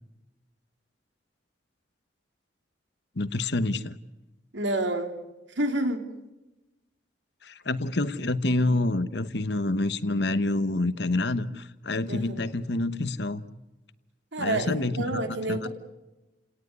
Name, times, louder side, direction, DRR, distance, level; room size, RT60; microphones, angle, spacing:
voice 1, 3.2-4.0 7.4-13.4 14.4-15.2 15.5-15.7, left 2 dB, 60° left, 13 dB, 1.1 m, -27 dB
voice 2, 4.5-5.1 5.5-6.0 12.1-12.5 14.3-15.7, right 1 dB, 75° right, 6 dB, 3.1 m, -29 dB
30.0 x 18.0 x 9.6 m, 1.0 s
head